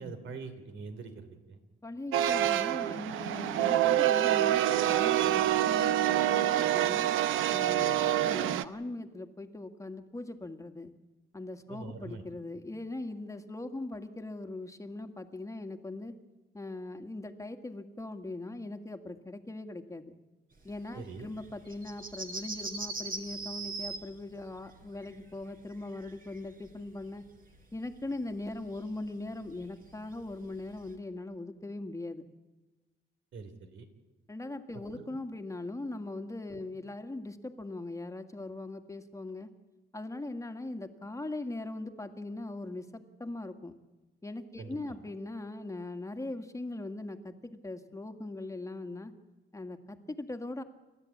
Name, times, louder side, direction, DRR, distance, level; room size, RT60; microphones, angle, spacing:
voice 1, 0.0-1.6 7.8-8.0 11.7-12.2 20.9-21.3 33.3-33.9 34.9-35.0 36.5-36.6 44.6-45.0, right 4 dB, 70° right, 8 dB, 3.2 m, -44 dB
voice 2, 1.8-7.1 7.5-8.0 8.3-10.9 11.3-16.1 16.5-20.1 20.6-27.2 27.7-32.2 34.3-39.5 39.9-43.8 44.2-49.1 49.5-50.6, left 2 dB, 15° left, 7 dB, 1.9 m, -40 dB
sound 1, 2.1-8.6, right 12 dB, 90° right, 0.8 m, -26 dB
sound 2, 20.7-27.0 27.3-30.9, right 3 dB, 45° right, 4.2 m, -41 dB
29.0 x 13.0 x 8.6 m, 1.2 s
cardioid pair, 90°, 20 cm